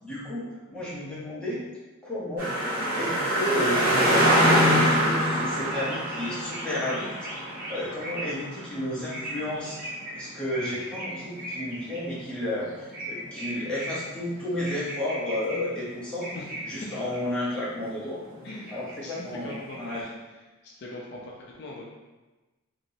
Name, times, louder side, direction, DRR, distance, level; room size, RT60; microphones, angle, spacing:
voice 1, 0.0-1.6 2.0-2.5 2.9-7.1 7.4-16.3 16.6-18.2 18.7-20.1, left 1 dB, 5° left, -10 dB, 0.9 m, -32 dB
sound 1, 2.4-10.3 10.5-12.4 12.7-15.6 15.8-15.9 16.2-17.2 17.4-18.0 18.3-20.0, equal, 45° right, 1.5 m, -26 dB
voice 2, 19.0-19.8 20.6-21.9, left 2 dB, 55° left, -3 dB, 0.5 m, -41 dB
3.0 x 2.9 x 2.7 m, 1.2 s
head